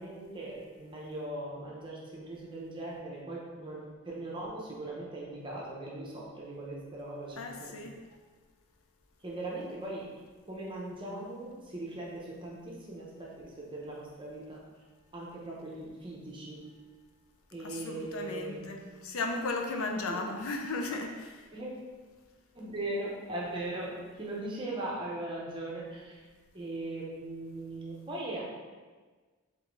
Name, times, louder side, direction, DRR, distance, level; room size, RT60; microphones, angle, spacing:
voice 1, 0.0-7.8 9.2-10.1 10.5-14.6 15.1-16.7 17.5-18.6 19.9-20.2 21.5-21.7 22.5-26.3 26.5-28.4, right 2 dB, 25° right, -4 dB, 0.8 m, -39 dB
voice 2, 7.4-8.0 17.6-21.5, left 3 dB, 75° left, 3 dB, 0.5 m, -35 dB
3.7 x 3.7 x 3.1 m, 1.4 s
head